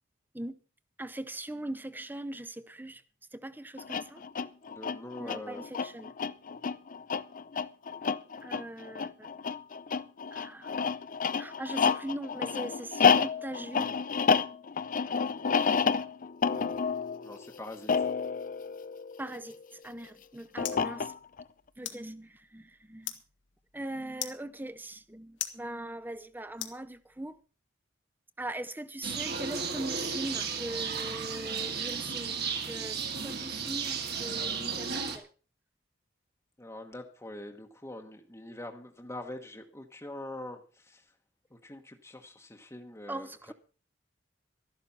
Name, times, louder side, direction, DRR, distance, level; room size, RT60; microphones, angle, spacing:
voice 1, 1.0-3.0 3.3-4.2 5.2-6.1 8.4-9.5 10.3-10.7 11.3-13.9 16.5-16.8 19.2-21.1 21.8-23.1 23.7-27.4 28.4-35.3 43.1-43.5, right 1 dB, 10° right, 0.8 m, -41 dB
sound 1, 3.8-19.6 20.6-21.4, left 6 dB, 45° left, 0.6 m, -30 dB
voice 2, 4.7-5.6 17.2-18.1 36.6-41.1 41.5-43.5, left 1 dB, 15° left, 1.2 m, -44 dB
sound 2, 19.8-27.4, left 11 dB, 75° left, 1.7 m, -44 dB
sound 3, 29.0-35.2, right 5 dB, 60° right, 2.3 m, -34 dB
13.0 x 12.0 x 5.6 m
head